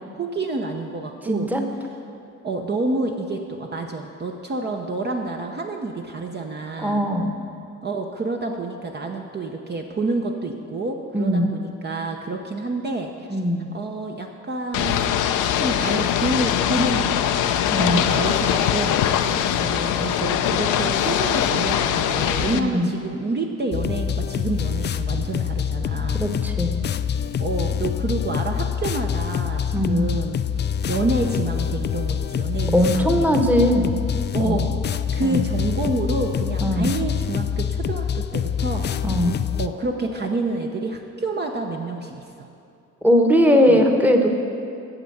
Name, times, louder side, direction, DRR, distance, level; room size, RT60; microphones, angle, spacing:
voice 1, 0.1-1.5 2.4-7.1 7.8-13.4 13.7-15.0 15.6-17.4 17.8-19.0 19.6-26.2 27.4-30.4 30.9-33.3 34.3-34.7 35.1-38.9 39.6-42.5 43.7-43.8, right 2 dB, 35° right, 2 dB, 0.8 m, -28 dB
voice 2, 1.3-1.6 6.8-7.4 11.1-11.5 13.3-13.7 17.7-18.0 19.3-19.4 22.5-22.9 26.2-26.8 29.7-30.1 32.7-33.8 34.4-34.6 35.2-35.4 36.6-36.9 39.0-39.3 43.0-44.3, equal, 5° right, 4 dB, 1.1 m, -19 dB
Ocean / Boat Water vehicle, 14.7-22.6, left 10 dB, 85° left, 0.6 m, -22 dB
sound 1, 23.7-39.7, left 8 dB, 35° left, 0.4 m, -25 dB
8.9 x 7.0 x 7.8 m, 2.6 s
cardioid pair, 90°, 30 cm